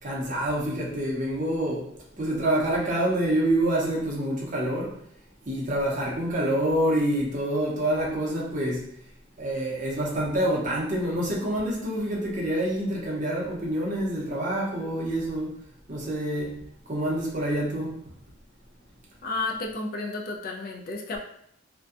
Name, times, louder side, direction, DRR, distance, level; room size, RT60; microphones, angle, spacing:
voice 1, 0.0-1.9 2.2-5.0 5.5-8.9 9.4-15.6 15.9-16.6 16.9-18.0, right 1 dB, 40° right, -3 dB, 0.6 m, -27 dB
voice 2, 19.2-21.2, left 3 dB, 45° left, 1 dB, 0.3 m, -32 dB
2.5 x 2.2 x 2.4 m, 0.70 s
head